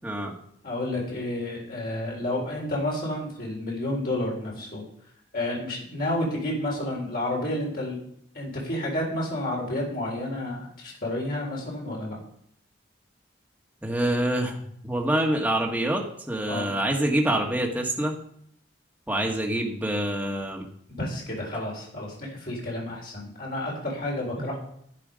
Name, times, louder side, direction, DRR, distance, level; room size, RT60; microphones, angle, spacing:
voice 1, 0.0-0.3 13.8-18.2 19.1-20.7, right 1 dB, 10° right, -1 dB, 1.5 m, -26 dB
voice 2, 0.6-4.8 5.3-8.0 8.3-12.2 16.5-16.7 20.9-24.6, left 1 dB, 50° left, -3 dB, 4.1 m, -30 dB
11.0 x 9.8 x 5.1 m, 0.68 s
head